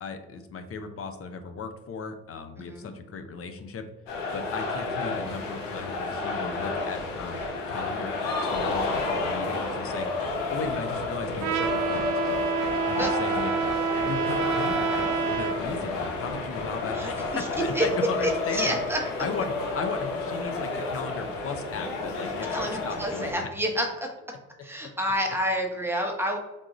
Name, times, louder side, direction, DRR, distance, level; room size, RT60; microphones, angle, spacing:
voice 1, 0.0-3.8 4.3-10.1 10.5-12.0 12.9-13.5 14.0-18.8 19.2-23.5, left 4 dB, 40° left, 7 dB, 0.6 m, -36 dB
voice 2, 2.6-2.9 13.0-13.1 16.9-17.5 17.7-17.9 18.2-19.0 22.5-24.1 24.6-26.4, equal, 5° right, 1 dB, 0.8 m, -29 dB
sound 1, 4.1-23.3, left 3 dB, 80° left, 0.8 m, -31 dB
Trumpet, 11.4-15.6, right 6 dB, 55° right, 0.5 m, -28 dB
3.7 x 2.4 x 3.0 m, 1.1 s
hypercardioid pair, 60°, 37 cm